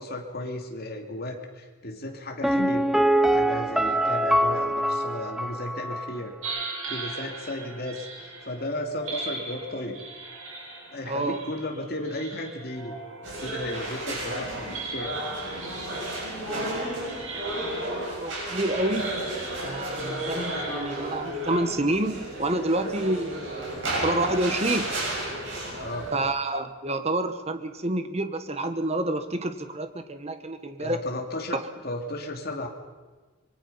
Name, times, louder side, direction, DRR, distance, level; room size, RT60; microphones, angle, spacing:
voice 1, 0.0-2.8 3.3-6.3 6.9-10.0 10.9-12.9 13.4-15.2 25.8-26.1 30.8-31.6 31.8-32.7, left 1 dB, 45° left, 3 dB, 2.8 m, -34 dB
Piano, 2.4-6.2 6.5-6.6, right 1 dB, ahead, 0.6 m, -24 dB
sound 1, 6.4-21.4, right 3 dB, 75° right, 6.0 m, -39 dB
voice 2, 11.0-11.4 14.3-14.4 16.5-19.1 19.6-23.5 24.0-24.9 26.1-31.0 31.5-31.6, right 1 dB, 30° right, 9 dB, 1.3 m, -29 dB
sound 2, 13.2-26.2, right 1 dB, 55° right, 7.4 m, -33 dB
25.0 x 23.0 x 5.6 m, 1.3 s
head